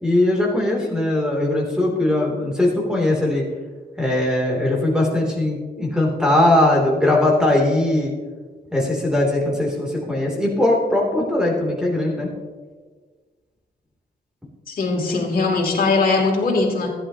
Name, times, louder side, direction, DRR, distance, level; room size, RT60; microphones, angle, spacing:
voice 1, 0.0-3.4 4.0-8.1 8.7-12.3, left 1 dB, 5° right, -2 dB, 2.8 m, -20 dB
voice 2, 14.7-16.9, left 3 dB, 55° left, -1 dB, 2.8 m, -20 dB
15.0 x 11.0 x 2.8 m, 1.4 s
wide cardioid pair, 130°, 18 cm